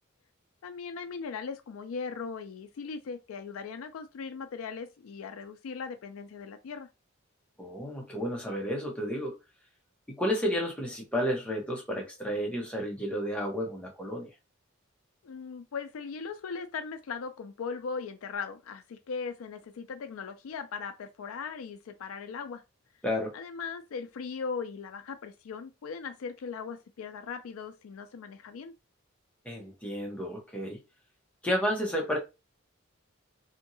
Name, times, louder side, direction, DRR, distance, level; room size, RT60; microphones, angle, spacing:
voice 1, 0.6-6.9 15.2-22.6 23.3-28.7, left 5 dB, 80° left, 0.4 m, -39 dB
voice 2, 7.6-9.4 10.1-14.3 23.0-23.4 29.4-30.8 31.4-32.2, equal, 5° left, 0.8 m, -31 dB
2.8 x 2.6 x 2.6 m
head